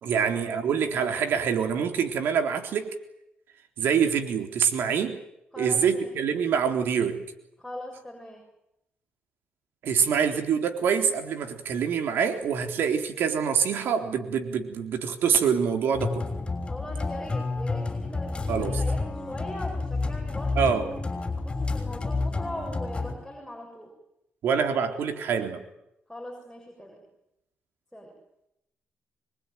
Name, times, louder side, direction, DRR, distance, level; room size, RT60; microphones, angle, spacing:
voice 1, 0.0-2.9 3.8-5.2 5.6-7.2 9.8-16.2 18.5-18.8 20.6-20.9 24.4-25.6, right 7 dB, 75° right, 6 dB, 3.7 m, -25 dB
voice 2, 5.5-6.1 7.6-8.5 16.7-21.0 21.4-23.9 26.1-27.0 27.9-28.1, left 1 dB, 5° left, -1 dB, 7.2 m, -40 dB
sound 1, 15.9-23.1, left 3 dB, 25° left, 6.0 m, -30 dB
25.0 x 22.5 x 9.4 m, 0.84 s
cardioid pair, 100°, 4 cm